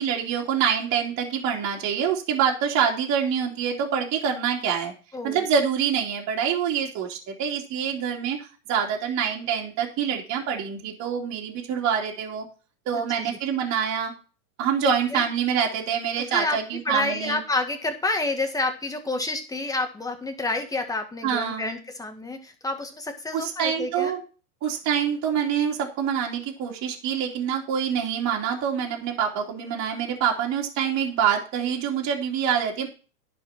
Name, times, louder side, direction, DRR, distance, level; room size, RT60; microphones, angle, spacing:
voice 1, 0.0-4.9 5.2-12.4 12.8-14.1 14.6-17.4 21.2-21.7 23.3-24.2 24.6-32.9, right 8 dB, 35° right, -1 dB, 3.1 m, -26 dB
voice 2, 5.1-5.5 12.9-13.4 14.8-15.2 16.2-16.6 16.9-24.1, left 2 dB, 10° left, 5 dB, 1.9 m, -29 dB
10.5 x 5.1 x 5.9 m, 0.35 s
hypercardioid pair, 125°, 45 cm